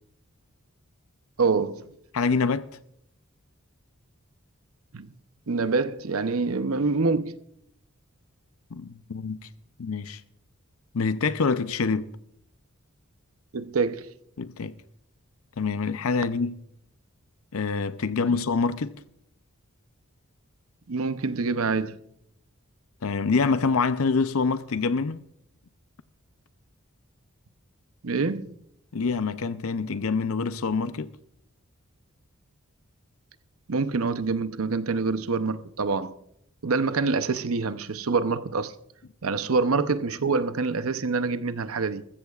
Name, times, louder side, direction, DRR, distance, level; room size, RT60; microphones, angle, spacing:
voice 1, 1.4-1.9 4.9-5.1 5.5-7.4 13.5-14.1 20.9-22.0 28.0-28.5 33.7-36.1 36.6-38.7 39.2-42.0, right 4 dB, 75° right, 0.7 m, -26 dB
voice 2, 2.1-2.7 8.7-9.5 9.8-10.2 10.9-12.1 14.4-14.7 15.6-16.6 17.5-19.0 23.0-25.2 28.9-31.1, left 4 dB, 75° left, 0.6 m, -26 dB
20.5 x 15.0 x 2.4 m
head